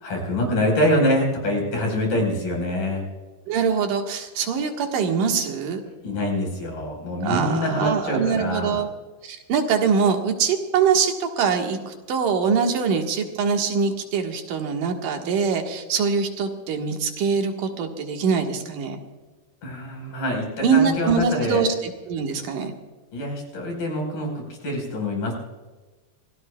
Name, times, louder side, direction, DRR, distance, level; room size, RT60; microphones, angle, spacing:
voice 1, 0.0-3.0 6.0-8.8 19.6-21.6 23.1-25.3, left 1 dB, 85° left, 1 dB, 6.5 m, -25 dB
voice 2, 3.5-5.8 7.2-8.9 9.2-19.0 20.6-22.7, right 6 dB, 80° right, 3 dB, 3.2 m, -23 dB
26.0 x 17.5 x 2.3 m, 1.3 s
omnidirectional pair, 3.8 m